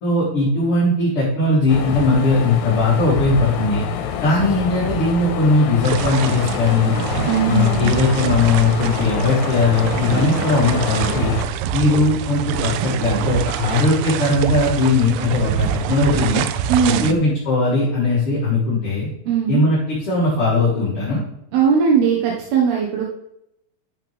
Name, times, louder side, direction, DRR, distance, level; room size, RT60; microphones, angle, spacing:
voice 1, 0.0-3.8 4.2-6.9 7.5-11.3 11.7-16.4 16.8-19.1 19.5-21.2, left 2 dB, 30° left, -7 dB, 3.3 m, -19 dB
sound 1, 1.7-11.5, left 8 dB, 75° left, 3.6 m, -27 dB
sound 2, 5.8-17.1, right 9 dB, 85° right, 2.7 m, -25 dB
voice 2, 7.3-7.9 16.7-17.2 19.3-19.7 21.5-23.0, right 7 dB, 65° right, -2 dB, 2.7 m, -19 dB
12.5 x 8.2 x 3.5 m, 0.79 s
omnidirectional pair, 5.9 m